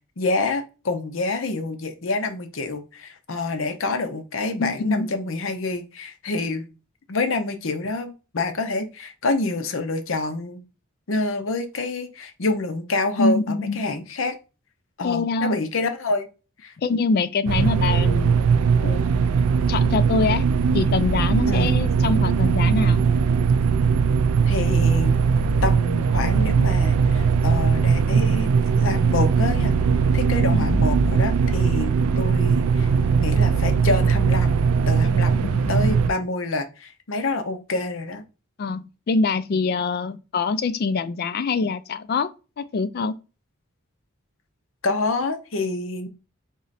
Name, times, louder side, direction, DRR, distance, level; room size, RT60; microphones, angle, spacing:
voice 1, 0.2-6.7 7.1-10.6 11.1-14.4 15.0-16.3 16.6-16.7 21.5-21.8 24.5-25.2 25.6-28.5 28.8-29.8 30.1-32.9 33.2-34.6 34.9-38.2 44.8-46.1, left 3 dB, 65° left, 0.7 m, -27 dB
voice 2, 4.6-5.1 13.2-13.8 15.0-15.6 16.8-18.4 18.8-19.2 19.7-20.4 20.7-23.0 30.5-30.8 35.4-36.0 38.6-42.3 42.6-43.1, left 4 dB, 45° left, 0.3 m, -24 dB
sound 1, 17.5-36.1, right 5 dB, 90° right, 0.4 m, -20 dB
3.8 x 3.0 x 4.1 m
head